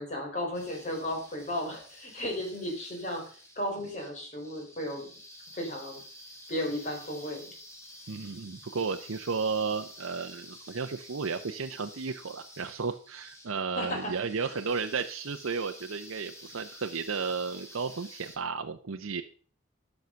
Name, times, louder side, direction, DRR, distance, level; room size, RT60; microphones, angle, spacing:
voice 1, 0.0-3.2 3.6-5.0 5.5-6.0 6.5-7.4 13.8-14.1, left 1 dB, 35° left, 0 dB, 4.3 m, -34 dB
sound 1, 0.5-18.4, left 1 dB, 15° left, 1.9 m, -50 dB
voice 2, 8.1-19.2, right 5 dB, 85° right, 6 dB, 0.7 m, -33 dB
12.0 x 6.5 x 5.7 m, 0.42 s
head